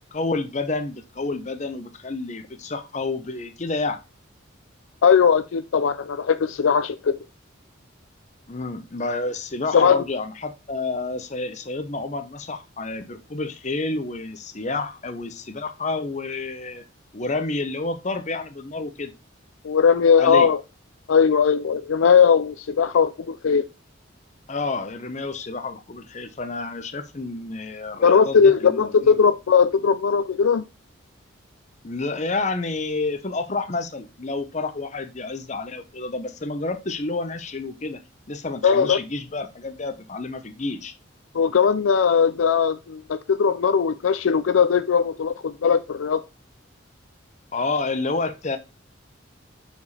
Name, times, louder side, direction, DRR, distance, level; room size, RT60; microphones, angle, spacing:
voice 1, 0.0-4.0 8.5-16.8 17.1-19.1 20.2-20.5 24.5-29.2 31.8-38.0 38.3-40.9 47.5-48.6, left 3 dB, 35° left, 0.8 m, -29 dB
voice 2, 5.0-7.2 9.7-10.0 19.6-20.6 21.1-23.6 28.0-30.6 38.6-39.0 41.3-46.2, left 6 dB, 80° left, 0.4 m, -19 dB
6.8 x 4.9 x 4.1 m
head